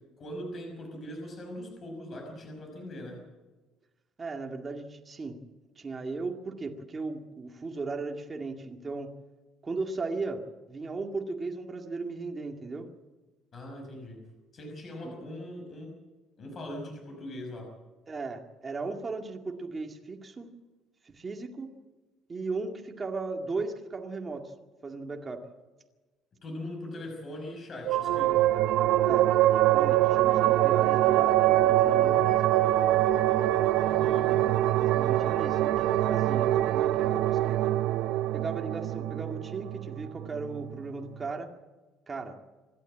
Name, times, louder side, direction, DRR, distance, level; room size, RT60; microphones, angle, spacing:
voice 1, 0.2-3.2 13.5-14.2 14.5-15.9 16.4-17.7 26.4-28.5 33.8-34.4, left 1 dB, 30° left, 2 dB, 5.7 m, -41 dB
voice 2, 4.2-5.4 5.8-9.1 9.6-10.4 10.7-12.9 15.0-15.1 18.1-20.5 21.0-21.7 22.3-24.5 24.8-25.4 29.1-32.4 34.2-37.7 38.3-41.5 42.1-42.4, right 3 dB, 20° right, 3 dB, 2.1 m, -36 dB
sound 1, 27.9-40.7, right 14 dB, 70° right, 0.7 m, -24 dB
27.0 x 12.0 x 8.8 m, 1.2 s
cardioid pair, 165°, 0 cm